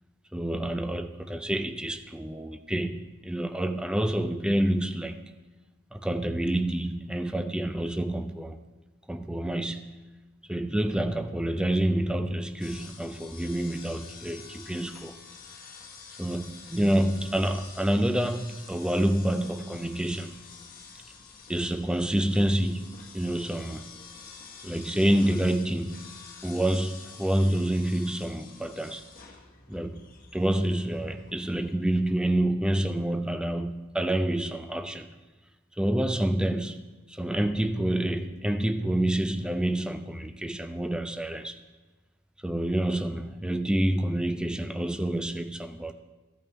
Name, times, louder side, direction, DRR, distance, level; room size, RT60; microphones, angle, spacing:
voice 1, 0.3-5.2 5.9-8.6 9.1-9.9 10.5-15.2 16.2-20.3 21.5-23.8 24.6-26.2 26.4-29.0 29.7-35.1 35.8-41.6 42.4-45.9, right 1 dB, 5° right, 0.3 m, -28 dB
sound 1, 12.6-31.7, left 5 dB, 45° left, 1.2 m, -48 dB
14.5 x 5.3 x 4.3 m
head